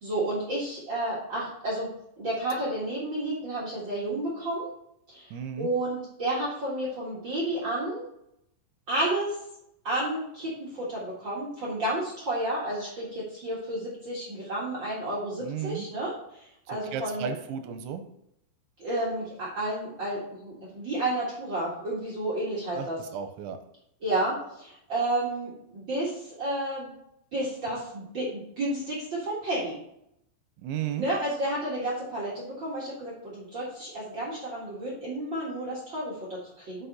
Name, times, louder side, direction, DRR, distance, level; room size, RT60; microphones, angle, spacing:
voice 1, 0.0-1.9 2.2-4.7 5.1-5.3 5.6-8.0 8.9-9.3 9.8-16.1 16.4-17.3 18.8-23.0 24.0-26.9 27.3-29.8 31.0-36.9, right 1 dB, 70° right, -5 dB, 1.1 m, -31 dB
voice 2, 5.3-5.7 15.4-15.9 16.9-18.0 22.7-23.6 30.6-31.1, right 8 dB, 90° right, 8 dB, 3.1 m, -34 dB
8.0 x 5.9 x 4.1 m, 0.76 s
omnidirectional pair, 5.4 m